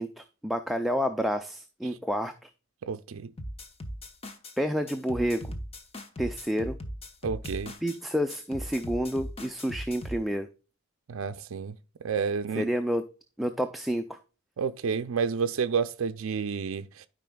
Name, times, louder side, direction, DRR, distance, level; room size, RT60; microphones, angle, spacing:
voice 1, 0.0-2.5 4.6-5.5 6.2-6.8 7.8-10.5 12.6-13.0 13.4-14.2, equal, ahead, 0.4 m, -29 dB
voice 2, 2.8-3.3 7.2-7.7 11.1-11.8 12.0-12.7 14.6-17.1, right 6 dB, 75° right, 0.4 m, -30 dB
sound 1, 3.4-4.6 4.9-8.0 8.3-10.2, equal, 30° left, 0.9 m, -39 dB
12.5 x 5.0 x 2.2 m
head